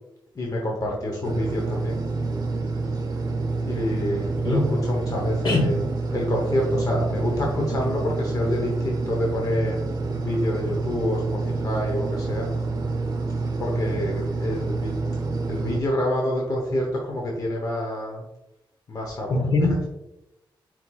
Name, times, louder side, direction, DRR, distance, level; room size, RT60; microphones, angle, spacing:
voice 1, 0.3-2.0 3.6-5.8 6.1-9.8 10.1-12.5 13.4-14.9 15.5-18.2 18.9-19.4, left 1 dB, 45° left, -1 dB, 0.9 m, -27 dB
sound 1, 1.2-15.8, right 3 dB, 45° right, 0.7 m, -27 dB
voice 2, 5.4-5.8 19.3-19.9, left 2 dB, 65° left, 1 dB, 1.2 m, -22 dB
4.4 x 4.4 x 2.3 m, 0.89 s
cardioid pair, 75°, 9 cm